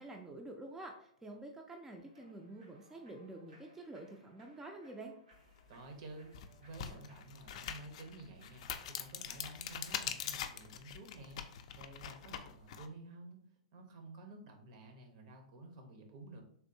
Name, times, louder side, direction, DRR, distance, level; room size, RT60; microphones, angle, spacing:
voice 1, 0.0-5.1, right 2 dB, 10° right, 2 dB, 0.4 m, -48 dB
Human voice / Clapping / Cheering, 2.0-11.7, right 1 dB, 90° right, 1.3 m, -67 dB
sound 1, 5.6-5.7 6.2-12.9, left 9 dB, 60° left, 0.3 m, -43 dB
voice 2, 5.7-6.3 6.6-13.4 13.7-16.4, right 2 dB, 55° right, 4 dB, 0.8 m, -52 dB
3.4 x 2.5 x 2.7 m, 0.68 s
hypercardioid pair, 120°, 4 cm